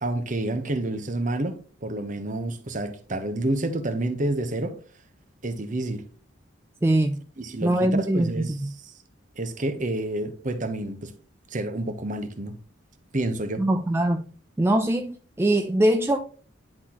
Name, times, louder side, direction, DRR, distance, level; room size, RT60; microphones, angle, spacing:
voice 1, 0.0-4.7 5.4-6.0 7.4-8.5 9.4-11.1 11.5-12.5 13.1-13.7, right 1 dB, 40° right, 1.0 m, -29 dB
voice 2, 6.8-7.2 7.6-8.7 13.6-14.2 14.6-16.2, right 1 dB, 15° right, 0.4 m, -22 dB
10.5 x 4.0 x 2.9 m
head